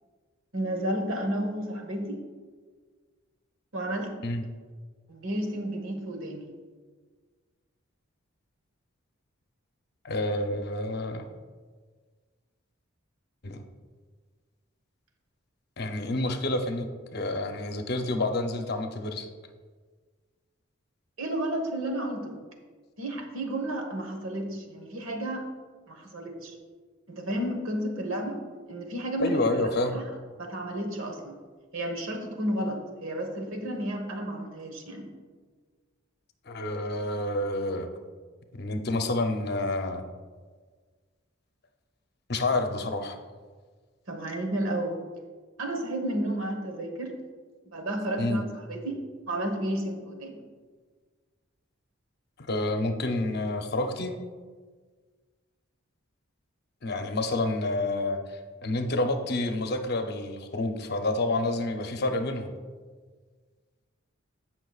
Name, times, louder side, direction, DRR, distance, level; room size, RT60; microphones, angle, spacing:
voice 1, 0.5-2.2 3.7-4.1 5.1-6.5 21.2-22.4 23.0-25.5 25.9-26.5 27.1-28.4 28.7-29.6 29.9-30.1 30.4-31.4 31.7-35.1 44.1-45.0 45.6-47.1 47.6-49.0 49.3-50.4, right 1 dB, 75° right, 4 dB, 1.3 m, -32 dB
voice 2, 10.0-11.3 13.4-13.6 15.8-19.3 29.2-29.9 36.5-37.9 38.5-40.0 42.3-43.2 48.2-48.4 52.5-54.2 56.8-62.5, left 2 dB, 50° left, 5 dB, 0.7 m, -29 dB
16.0 x 5.9 x 2.4 m, 1.5 s
head